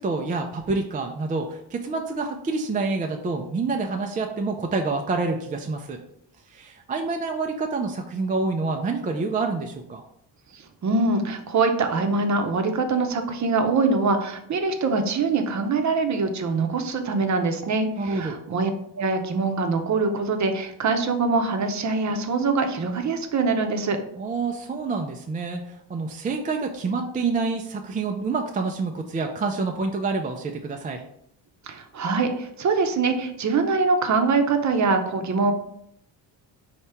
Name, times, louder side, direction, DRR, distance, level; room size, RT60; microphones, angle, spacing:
voice 1, 0.0-6.0 6.5-10.0 18.0-18.4 24.2-31.0, right 3 dB, 20° right, 3 dB, 0.3 m, -27 dB
voice 2, 10.5-18.7 19.0-24.0 31.6-35.5, right 4 dB, 40° right, 6 dB, 0.7 m, -23 dB
4.3 x 2.8 x 3.4 m, 0.73 s
cardioid pair, 85°, 46 cm